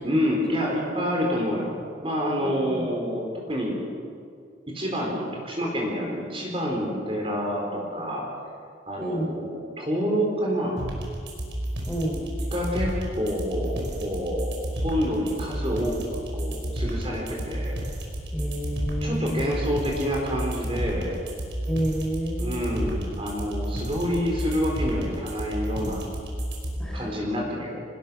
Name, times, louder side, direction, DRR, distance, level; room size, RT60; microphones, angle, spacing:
voice 1, 0.0-3.8 4.7-8.2 8.9-10.8 12.5-17.7 19.0-21.2 22.4-26.1 26.9-27.8, equal, 30° right, -2 dB, 4.1 m, -28 dB
voice 2, 2.4-2.9 9.0-9.4 11.9-12.4 18.3-19.5 21.7-22.9 26.8-27.1, right 1 dB, 5° left, -3 dB, 4.7 m, -30 dB
sound 1, 10.8-26.8, right 1 dB, 75° right, 5.2 m, -31 dB
27.0 x 19.5 x 6.3 m, 2.3 s
head